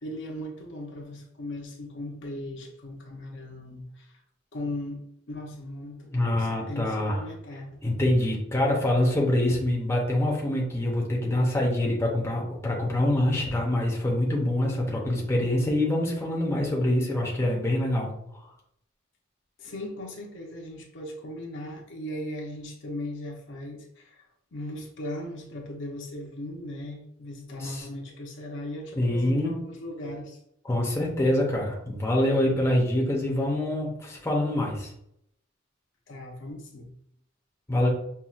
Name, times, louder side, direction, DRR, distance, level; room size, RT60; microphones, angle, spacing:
voice 1, 0.0-4.1 4.5-7.8 19.6-30.4 36.1-36.9, left 1 dB, 60° left, 0 dB, 0.8 m, -38 dB
voice 2, 6.1-7.2 7.8-18.4 27.6-27.8 29.0-29.6 30.7-34.9 37.7-37.9, left 1 dB, 15° left, -2 dB, 0.7 m, -25 dB
5.6 x 2.3 x 2.4 m, 0.74 s
head